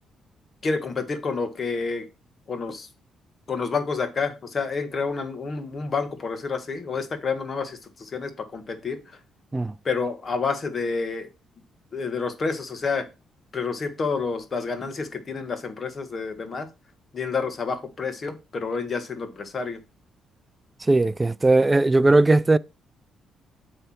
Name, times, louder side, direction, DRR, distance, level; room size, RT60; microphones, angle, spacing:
voice 1, 0.6-2.1 2.5-2.9 3.5-9.2 9.8-11.3 11.9-13.1 13.5-16.7 17.1-19.8, left 4 dB, 40° left, 1.5 m, -29 dB
voice 2, 20.9-22.6, right 2 dB, 20° right, 0.4 m, -18 dB
7.9 x 3.4 x 5.9 m
cardioid pair, 90°, 0 cm